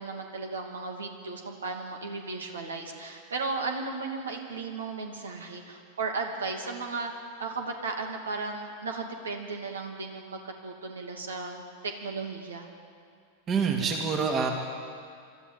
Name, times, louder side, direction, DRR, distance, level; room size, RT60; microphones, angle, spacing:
voice 1, 0.0-7.1 7.4-12.7, right 4 dB, 70° right, 3 dB, 2.7 m, -35 dB
voice 2, 13.5-14.5, right 5 dB, 25° right, 2 dB, 2.5 m, -26 dB
24.0 x 13.5 x 9.3 m, 2.2 s
figure-of-eight pair, 90°, 0 cm